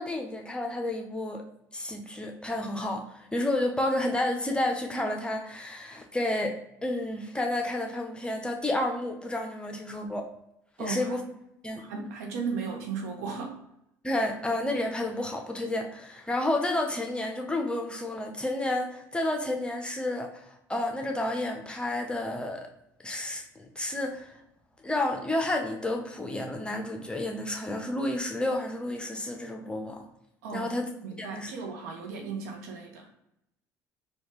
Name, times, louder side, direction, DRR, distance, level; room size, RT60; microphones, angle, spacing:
voice 1, 0.0-1.4 1.7-6.5 6.8-10.3 10.8-11.2 11.6-11.8 14.0-22.7 23.0-24.3 24.8-30.0 30.5-30.9 31.2-31.5, left 1 dB, 10° left, 2 dB, 0.8 m, -30 dB
voice 2, 10.8-11.2 11.8-13.6 30.4-30.7 31.0-33.2, right 5 dB, 75° right, 2 dB, 0.8 m, -36 dB
4.2 x 2.4 x 3.2 m, 0.80 s
hypercardioid pair, 60°, 9 cm